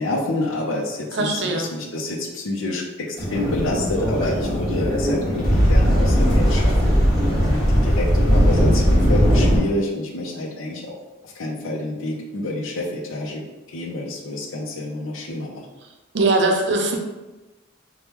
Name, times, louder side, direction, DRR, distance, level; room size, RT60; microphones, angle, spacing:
voice 1, 0.0-6.9 7.4-11.0 11.2-15.7, left 2 dB, 80° left, 1 dB, 0.6 m, -28 dB
voice 2, 1.1-1.7 16.1-17.0, right 2 dB, 55° right, 2 dB, 0.5 m, -20 dB
sound 1, 3.2-9.6, equal, ahead, 1.2 m, -18 dB
3.4 x 2.2 x 2.9 m, 1.1 s
head